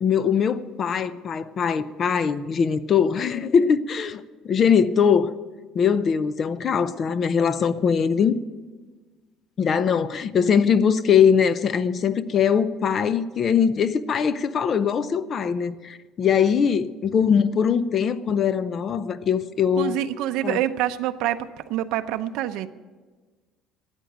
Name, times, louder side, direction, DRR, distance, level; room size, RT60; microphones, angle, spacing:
voice 1, 0.0-5.3 5.7-8.4 9.6-20.0 20.4-20.6, left 7 dB, 30° left, 0.5 m, -21 dB
voice 2, 19.8-22.7, right 13 dB, 70° right, 0.6 m, -26 dB
13.5 x 9.0 x 9.2 m
cardioid pair, 165°, 0 cm